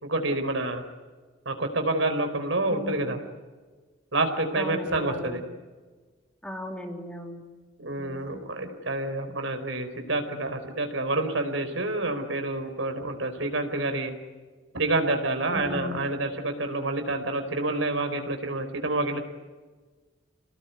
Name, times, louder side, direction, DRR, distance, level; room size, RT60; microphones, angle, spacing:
voice 1, 0.0-0.8 1.4-3.2 4.1-5.4 7.8-14.1 14.7-19.2, right 2 dB, 80° right, 6 dB, 4.4 m, -28 dB
voice 2, 2.7-3.1 4.5-5.4 6.4-7.4 8.0-8.4 15.5-16.1, left 1 dB, 5° left, 2 dB, 3.1 m, -37 dB
29.5 x 19.0 x 9.5 m, 1.4 s
head